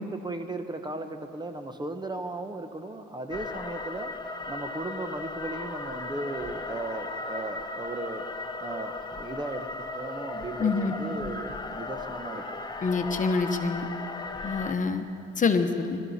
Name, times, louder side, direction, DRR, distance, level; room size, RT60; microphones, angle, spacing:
voice 1, 0.0-4.1 4.5-8.2 8.6-12.4 14.8-15.2, right 2 dB, 20° right, 7 dB, 1.0 m, -36 dB
sound 1, 3.3-14.7, left 3 dB, 20° left, 1.0 m, -36 dB
voice 2, 10.6-10.9 12.8-13.9 14.4-15.1 15.4-16.0, left 4 dB, 40° left, 6 dB, 1.1 m, -26 dB
25.5 x 13.0 x 4.3 m, 2.5 s
cardioid pair, 90°, 20 cm